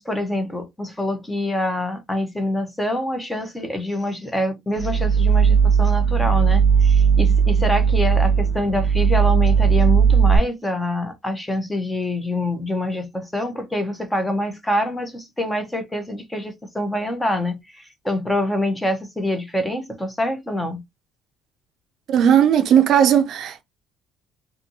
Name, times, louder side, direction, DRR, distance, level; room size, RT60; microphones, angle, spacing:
voice 1, 0.0-20.8, left 1 dB, 10° left, 0.6 m, -25 dB
sound 1, 4.8-10.4, right 6 dB, 85° left, 0.7 m, -17 dB
voice 2, 22.1-23.6, right 9 dB, 55° right, 0.4 m, -16 dB
2.6 x 2.5 x 2.6 m
cardioid pair, 135°, 0 cm